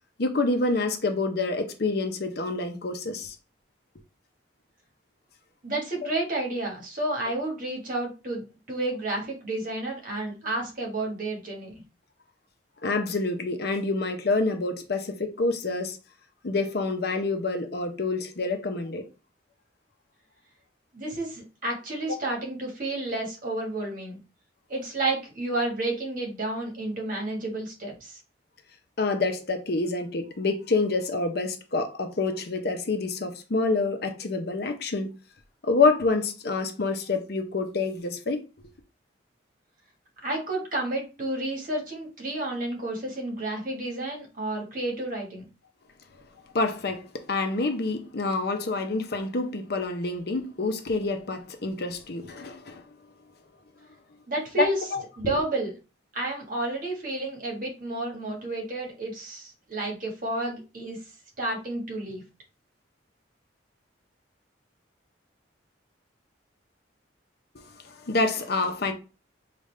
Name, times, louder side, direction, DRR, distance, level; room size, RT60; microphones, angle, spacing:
voice 1, 0.2-3.4 12.8-16.0 16.4-19.0 29.0-35.1 35.6-38.4 46.5-52.8 54.6-54.7 54.9-55.0 55.3-55.4 67.9-68.9, left 3 dB, 55° left, 0.7 m, -27 dB
voice 2, 5.6-11.8 20.9-24.2 24.7-28.2 40.2-45.5 54.3-54.9 55.2-55.8 56.1-61.0 61.4-62.2, right 2 dB, 45° right, 1.4 m, -31 dB
5.1 x 2.5 x 3.2 m
head